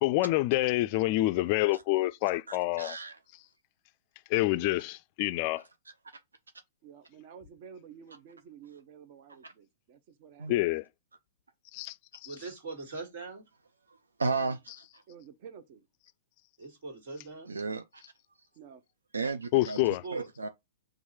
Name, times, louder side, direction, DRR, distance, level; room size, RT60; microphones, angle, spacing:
voice 1, 0.0-3.0 4.3-5.6 10.5-10.8 11.7-12.0 12.2-12.4 19.5-20.0, left 18 dB, 45° left, 0.3 m, -27 dB
voice 2, 2.5-3.2 10.4-10.5 14.2-14.7 17.5-18.0 19.1-19.8 20.1-20.5, right 4 dB, 85° right, 0.4 m, -33 dB
voice 3, 6.8-10.5 15.1-15.9 18.6-18.8, right 7 dB, 45° right, 0.7 m, -51 dB
voice 4, 12.2-13.4 16.6-17.5 19.8-20.3, right 3 dB, 65° right, 1.9 m, -41 dB
4.7 x 2.5 x 4.2 m
hypercardioid pair, 115°, 0 cm